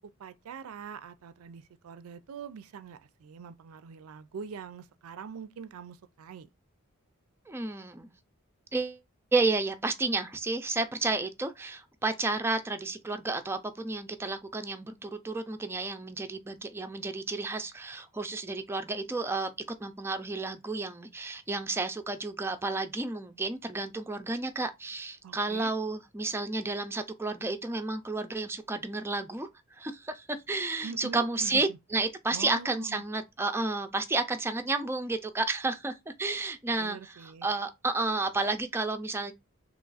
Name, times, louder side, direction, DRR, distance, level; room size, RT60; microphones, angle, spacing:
voice 1, 0.0-6.5 25.2-25.7 30.8-31.8 32.3-33.0 36.7-37.5, right 6 dB, 80° right, 0.4 m, -44 dB
voice 2, 7.5-8.1 8.7-9.0 9.3-19.5 19.8-29.5 29.8-39.3, right 3 dB, 10° right, 0.3 m, -31 dB
3.0 x 2.4 x 3.9 m
head